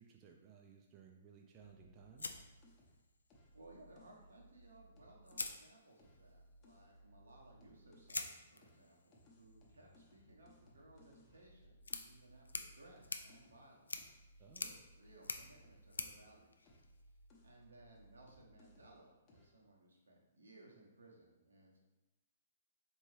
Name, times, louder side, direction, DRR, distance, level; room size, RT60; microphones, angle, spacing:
voice 1, 0.0-2.5 14.4-14.7, right 6 dB, 30° right, 1 dB, 0.4 m, -60 dB
sound 1, 1.6-5.6 6.0-8.3 8.6-16.3 16.6-19.0 19.3-19.6, equal, 30° left, 0.9 m, -64 dB
sound 2, 2.2-3.3 4.6-4.7 5.2-6.3 8.1-17.3, left 3 dB, 85° left, 0.3 m, -48 dB
voice 2, 3.5-14.1 14.4-17.0 17.4-21.8, right 2 dB, 85° right, -2 dB, 1.1 m, -62 dB
4.3 x 2.9 x 3.2 m, 1.0 s
hypercardioid pair, 125°, 0 cm